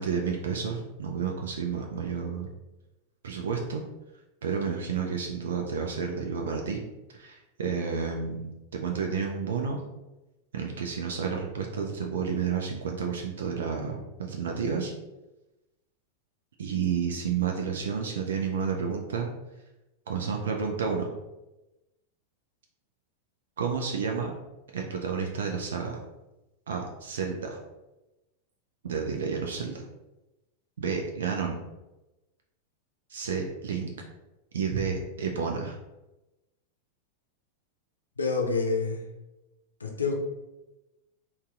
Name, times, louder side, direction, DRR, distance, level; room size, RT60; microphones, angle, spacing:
voice 1, 0.0-2.5 3.2-3.8 4.4-6.8 7.1-9.8 10.5-14.9 16.6-19.3 20.1-21.1 23.6-24.3 24.7-26.0 26.7-27.6 28.8-29.8 30.8-31.6 33.1-33.9 34.5-35.8, right 6 dB, 65° right, 1 dB, 0.5 m, -30 dB
voice 2, 38.2-39.0 39.8-40.1, left 4 dB, 75° left, 1 dB, 0.6 m, -27 dB
4.0 x 2.4 x 3.6 m, 1.0 s
figure-of-eight pair, 90°, 0 cm